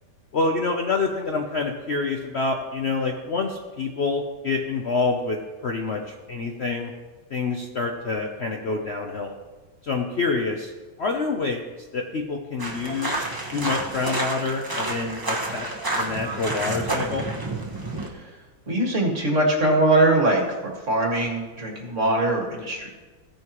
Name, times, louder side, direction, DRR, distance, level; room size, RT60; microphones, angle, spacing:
voice 1, 0.3-6.9 7.3-9.3 9.8-10.7 11.0-15.7 15.9-17.3, left 3 dB, 85° left, 2 dB, 0.5 m, -27 dB
sound 1, 12.6-18.1, right 2 dB, 15° right, 0.9 m, -29 dB
voice 2, 18.7-22.9, right 2 dB, 40° right, -1 dB, 2.1 m, -22 dB
15.5 x 9.5 x 3.0 m, 1.3 s
omnidirectional pair, 2.2 m